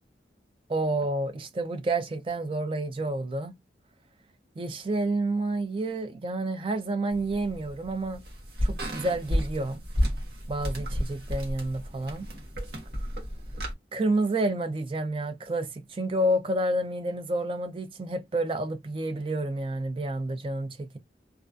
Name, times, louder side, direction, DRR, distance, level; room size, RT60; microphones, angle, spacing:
voice 1, 0.7-3.6 4.6-8.2 8.6-9.8 10.5-12.3 13.9-21.0, right 2 dB, 30° right, 0.3 m, -29 dB
sound 1, 7.1-13.7, equal, 60° right, 0.9 m, -32 dB
2.3 x 2.2 x 2.4 m
head